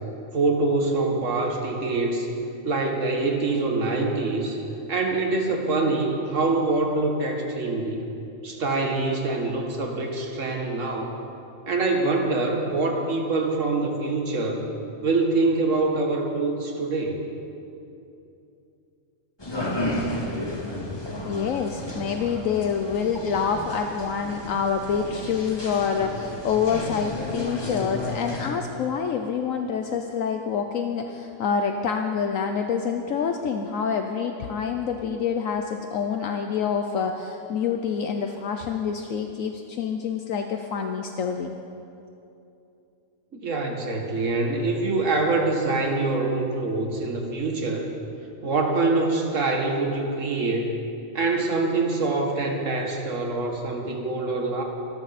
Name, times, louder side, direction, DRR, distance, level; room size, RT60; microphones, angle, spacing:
voice 1, 0.3-2.3 2.6-4.6 4.9-8.0 8.4-11.1 11.7-14.7 15.0-17.2 43.3-47.9 48.4-50.7 51.1-54.6, right 3 dB, 60° right, 1 dB, 2.1 m, -25 dB
sound 1, 19.4-28.5, left 1 dB, 20° left, 1.9 m, -33 dB
voice 2, 21.2-41.6, left 6 dB, 70° left, 5 dB, 1.2 m, -27 dB
24.5 x 13.5 x 4.2 m, 2.8 s
omnidirectional pair, 1.5 m